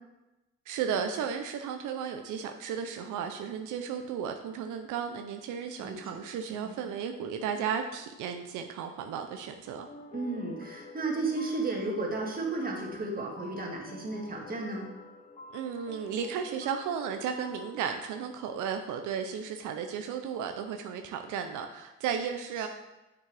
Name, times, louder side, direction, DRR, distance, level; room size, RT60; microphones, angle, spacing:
voice 1, 0.7-9.9 15.5-22.7, right 7 dB, 85° right, 6 dB, 0.6 m, -34 dB
sound 1, 9.9-19.1, left 2 dB, 25° left, 0.6 m, -49 dB
voice 2, 10.1-14.9, right 3 dB, 30° right, -1 dB, 1.8 m, -33 dB
7.2 x 6.0 x 3.3 m, 1.0 s
cardioid pair, 90°, 30 cm